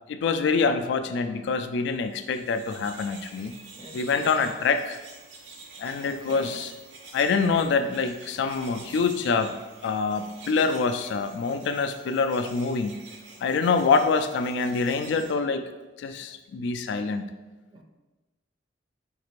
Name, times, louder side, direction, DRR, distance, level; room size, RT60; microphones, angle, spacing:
voice 1, 0.1-3.5 3.9-5.0 5.8-6.7 7.1-9.6 9.8-13.0 13.4-15.6 16.0-17.3, left 4 dB, 65° left, 8 dB, 0.3 m, -25 dB
sound 1, 2.1-15.3, right 3 dB, 80° right, 0.6 m, -47 dB
voice 2, 3.7-4.5 6.0-6.6 17.7-17.8, right 1 dB, 25° right, 2 dB, 0.4 m, -43 dB
5.2 x 2.4 x 3.1 m, 1.2 s
head